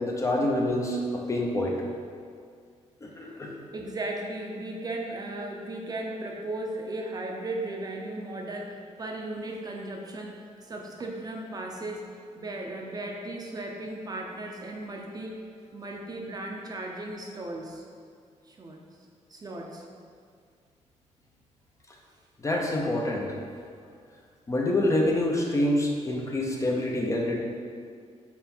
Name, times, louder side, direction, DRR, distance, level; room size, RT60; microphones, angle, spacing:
voice 1, 0.0-1.8 3.0-3.5 22.4-23.3 24.5-27.4, left 1 dB, 25° left, -1 dB, 0.7 m, -26 dB
voice 2, 3.3-12.0 12.4-15.4 15.7-17.8 18.5-18.8 19.3-19.8, right 2 dB, 30° right, 0 dB, 0.6 m, -36 dB
5.9 x 4.3 x 4.3 m, 2.2 s
wide cardioid pair, 145°, 12 cm